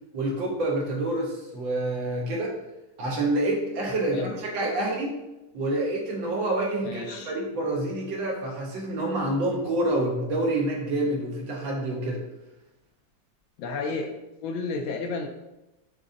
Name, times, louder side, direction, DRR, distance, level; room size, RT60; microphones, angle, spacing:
voice 1, 0.1-2.6 3.0-5.1 5.5-12.2, right 1 dB, 70° right, -1 dB, 1.5 m, -27 dB
voice 2, 6.8-7.3 13.6-14.1 14.4-15.3, left 4 dB, 75° left, 3 dB, 1.3 m, -31 dB
5.1 x 3.9 x 2.5 m, 0.97 s
omnidirectional pair, 2.3 m